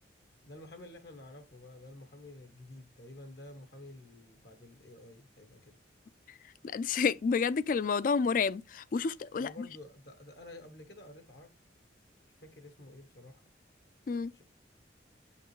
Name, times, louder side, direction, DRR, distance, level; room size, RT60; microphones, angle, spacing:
voice 1, 0.4-5.7 9.4-11.5 12.3-13.4 14.3-14.4, left 1 dB, 65° left, 1.1 m, -51 dB
voice 2, 6.6-9.5 14.1-14.3, left 5 dB, 45° left, 0.3 m, -29 dB
8.5 x 5.7 x 3.1 m
head